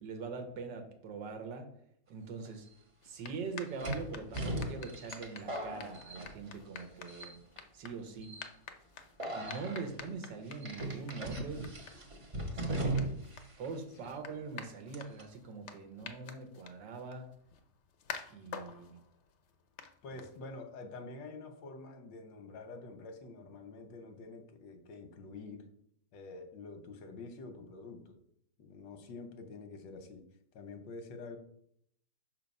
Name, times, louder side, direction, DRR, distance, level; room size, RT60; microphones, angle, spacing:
voice 1, 0.0-1.7 2.1-2.7 3.0-7.4 7.7-8.4 9.3-11.7 12.5-12.9 13.6-17.3 18.3-19.0 20.1-20.2, right 4 dB, 80° right, 6 dB, 1.6 m, -43 dB
sound 1, 2.4-2.5 3.8-6.8 7.1-7.6 8.2-8.5 9.2-9.8 10.6-13.4 13.6-13.7 14.9-15.2, right 1 dB, 35° right, 0.5 m, -38 dB
sound 2, 3.0-20.7, left 6 dB, 65° left, 0.7 m, -50 dB
voice 2, 20.0-25.7 26.1-28.2 28.6-30.2 30.5-31.4, left 3 dB, 90° left, 6 dB, 1.6 m, -47 dB
6.0 x 3.9 x 5.3 m, 0.69 s
omnidirectional pair, 1.9 m